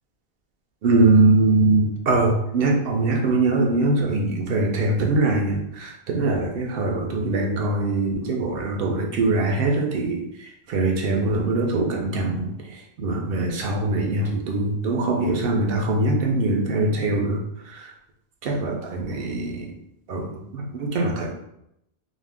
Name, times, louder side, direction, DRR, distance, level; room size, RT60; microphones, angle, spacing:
voice 1, 0.8-17.9 18.4-19.7 20.1-21.3, right 2 dB, 65° right, 1 dB, 0.7 m, -22 dB
2.5 x 2.1 x 3.3 m, 0.80 s
omnidirectional pair, 1.1 m